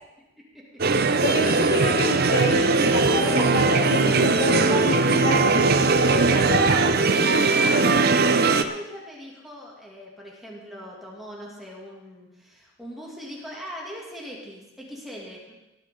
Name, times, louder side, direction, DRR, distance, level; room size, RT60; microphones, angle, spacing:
sound 1, 0.8-8.6, right 3 dB, 45° right, 0.6 m, -20 dB
voice 1, 1.2-6.8, left 2 dB, 70° left, 0 dB, 1.3 m, -28 dB
voice 2, 7.4-15.5, equal, ahead, -4 dB, 2.5 m, -40 dB
18.5 x 9.6 x 3.8 m, 1.0 s
head